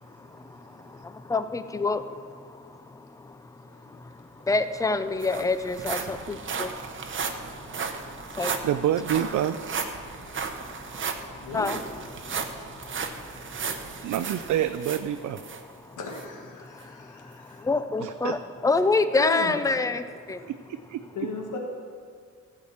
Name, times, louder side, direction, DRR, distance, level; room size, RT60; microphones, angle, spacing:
voice 1, 0.0-8.7 10.0-11.8 12.1-14.1 15.8-16.0 16.6-20.4, left 3 dB, 10° left, 11 dB, 0.4 m, -30 dB
sound 1, 4.4-4.5 4.8-15.6 16.1-16.3 16.8-16.9, right 5 dB, 40° right, 0.8 m, -35 dB
voice 2, 8.6-9.6 14.0-15.4 18.0-18.4 20.4-21.0, right 11 dB, 75° right, 9 dB, 0.4 m, -27 dB
voice 3, 16.0-17.7 19.2-19.6 20.3-20.5 21.1-21.6, left 4 dB, 80° left, 1 dB, 1.5 m, -36 dB
15.0 x 5.0 x 7.1 m, 2.1 s
wide cardioid pair, 145°, 30 cm